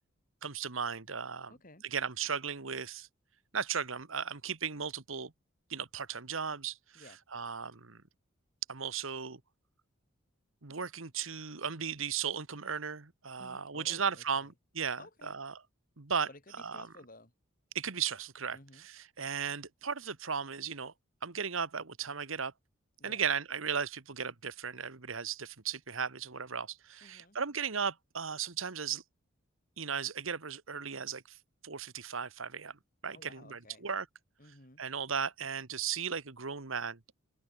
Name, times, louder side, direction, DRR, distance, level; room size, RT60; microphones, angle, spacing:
voice 1, 0.4-1.5 1.9-3.1 3.5-5.3 5.7-6.8 7.3-8.0 8.7-9.4 10.6-15.5 16.0-16.3 16.6-16.9 17.7-18.6 19.2-20.9 21.2-22.5 23.0-29.0 29.8-31.4 31.6-32.7 33.0-34.0 34.8-37.0, right 6 dB, 80° right, 1.6 m, -36 dB
voice 2, 1.5-1.9 6.9-7.2 13.4-14.5 15.0-15.4 16.3-17.3 18.5-18.9 23.0-23.2 27.0-27.4 33.1-33.9 34.4-34.8, left 2 dB, 40° left, 5.8 m, -55 dB
open air
head